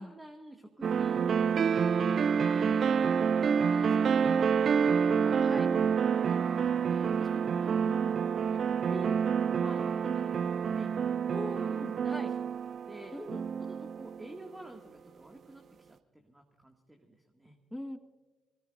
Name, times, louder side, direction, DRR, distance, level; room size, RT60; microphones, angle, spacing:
voice 1, 0.0-1.5 3.4-6.4 6.9-8.6 8.9-11.0 11.9-12.6 12.9-13.2 13.6-17.6, right 1 dB, 15° right, 3 dB, 2.0 m, -49 dB
sound 1, 0.8-14.4, right 6 dB, 50° right, 0.4 m, -28 dB
voice 2, 7.9-8.2 11.3-12.3 13.1-13.4 17.7-18.0, left 1 dB, 5° left, 9 dB, 1.3 m, -41 dB
26.0 x 18.5 x 2.6 m, 1.3 s
figure-of-eight pair, 40°, 0 cm